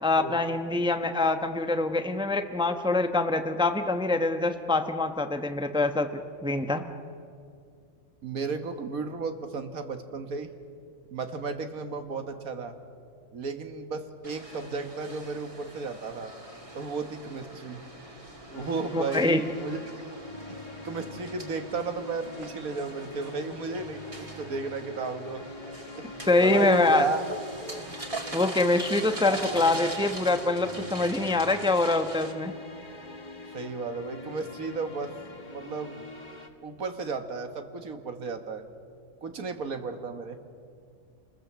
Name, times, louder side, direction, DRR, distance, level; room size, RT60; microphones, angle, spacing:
voice 1, 0.0-6.8 18.9-19.4 26.3-27.0 28.3-32.5, left 2 dB, 5° right, 7 dB, 0.8 m, -25 dB
voice 2, 8.2-10.5 11.1-12.8 13.3-16.3 16.7-17.8 18.5-19.8 20.5-25.5 26.0-26.1 26.4-28.0 29.3-29.7 33.5-35.1 35.5-36.0 36.6-38.6 39.2-40.5, right 4 dB, 90° right, 7 dB, 1.9 m, -34 dB
sound 1, 14.2-32.3, right 1 dB, 25° right, 2.4 m, -42 dB
sound 2, 18.5-36.5, left 3 dB, 30° left, 1.7 m, -44 dB
28.5 x 20.5 x 7.5 m, 2.3 s
omnidirectional pair, 1.4 m